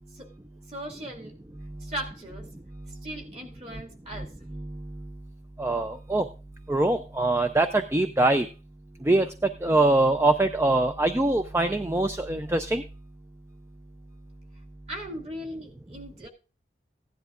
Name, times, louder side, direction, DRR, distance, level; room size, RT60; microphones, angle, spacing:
voice 1, 0.7-1.3 1.8-2.4 2.9-4.3 14.9-16.3, right 1 dB, 35° right, 2 dB, 2.3 m, -38 dB
voice 2, 5.6-6.2 6.7-8.5 9.1-9.3 9.6-12.8, right 2 dB, 15° right, 8 dB, 0.4 m, -23 dB
16.0 x 10.5 x 2.5 m, 0.34 s
head